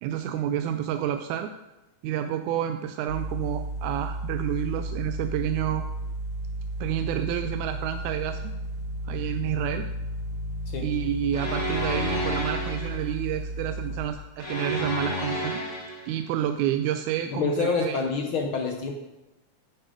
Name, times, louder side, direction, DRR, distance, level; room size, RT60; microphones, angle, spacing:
voice 1, 0.0-1.5 2.0-5.9 6.8-8.5 9.1-9.9 10.8-15.6 16.1-18.0, right 10 dB, 85° right, 8 dB, 2.0 m, -29 dB
sound 1, 3.1-14.1, right 1 dB, 55° right, 2.2 m, -33 dB
sound 2, 11.3-13.1 14.4-16.1, equal, 25° left, 2.4 m, -30 dB
voice 2, 17.3-18.9, left 5 dB, 75° left, 4 dB, 1.2 m, -27 dB
10.5 x 8.7 x 5.0 m, 0.99 s
omnidirectional pair, 3.4 m